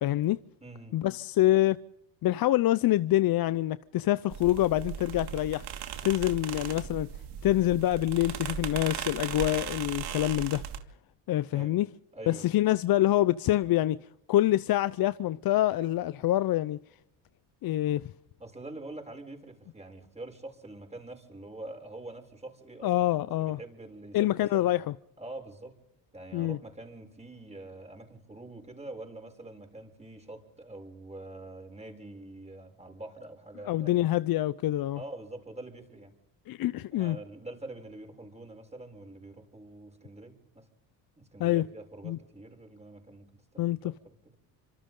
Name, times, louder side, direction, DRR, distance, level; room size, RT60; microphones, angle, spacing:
voice 1, 0.0-0.4 0.9-1.8 2.2-5.7 6.0-7.1 7.4-10.6 11.3-11.9 12.3-14.0 14.3-16.8 17.6-18.0 22.8-23.6 24.1-24.9 26.3-26.6 33.7-35.0 36.5-37.2 41.4-41.6 42.0-42.2 43.6-43.9, left 14 dB, 55° left, 0.8 m, -26 dB
voice 2, 0.6-1.0 11.5-11.7 12.1-12.7 18.4-22.9 23.4-24.7 25.2-25.8 26.1-34.0 34.9-36.1 36.7-40.7 41.2-44.3, right 2 dB, 15° right, 7.0 m, -45 dB
sound 1, 4.3-10.8, right 9 dB, 65° right, 2.8 m, -37 dB
29.5 x 26.5 x 3.9 m
supercardioid pair, 85°, 43 cm